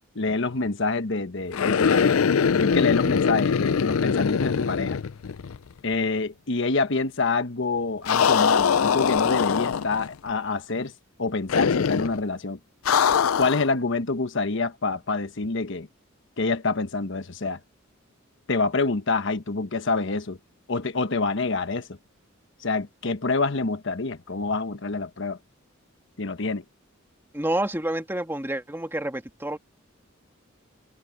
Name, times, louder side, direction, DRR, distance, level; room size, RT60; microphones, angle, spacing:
voice 1, 0.1-2.2 2.5-5.0 5.8-10.9 11.2-12.6 13.4-15.9 16.4-17.6 18.5-20.4 20.7-22.0 22.6-25.4 26.2-26.6, left 3 dB, 60° left, 1.1 m, -26 dB
sound 1, 1.5-5.7 5.9-6.0 8.1-10.1 11.5-12.2 12.9-13.7, left 6 dB, 85° left, 0.5 m, -22 dB
voice 2, 27.3-29.6, right 1 dB, 10° right, 2.0 m, -28 dB
head